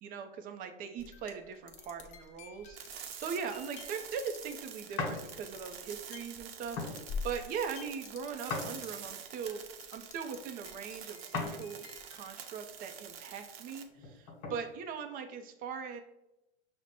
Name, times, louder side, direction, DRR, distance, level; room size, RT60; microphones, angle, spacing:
voice 1, 0.0-9.6 9.9-16.0, right 6 dB, 25° right, 7 dB, 0.5 m, -40 dB
sound 1, 1.0-9.1 9.4-10.4 10.6-13.0, left 5 dB, 25° left, 0.5 m, -48 dB
sound 2, 2.8-13.8, right 8 dB, 65° right, 0.7 m, -47 dB
sound 3, 5.0-5.2 5.8-6.0 6.7-7.0 8.5-9.2 11.3-11.6 12.1-12.2 13.9-14.6, left 3 dB, 50° left, 1.3 m, -37 dB
5.8 x 2.1 x 4.1 m, 0.91 s
hypercardioid pair, 115°, 32 cm